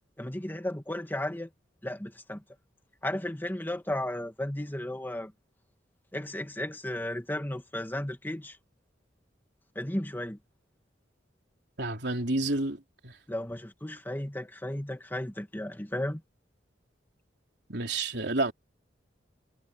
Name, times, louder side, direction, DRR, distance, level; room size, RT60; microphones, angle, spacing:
voice 1, 0.2-1.5 1.8-2.4 3.0-5.3 6.1-8.6 9.8-10.4 13.3-16.2, left 1 dB, 10° left, 1.9 m, -34 dB
voice 2, 11.8-13.1 17.7-18.5, right 2 dB, 65° right, 3.9 m, -30 dB
head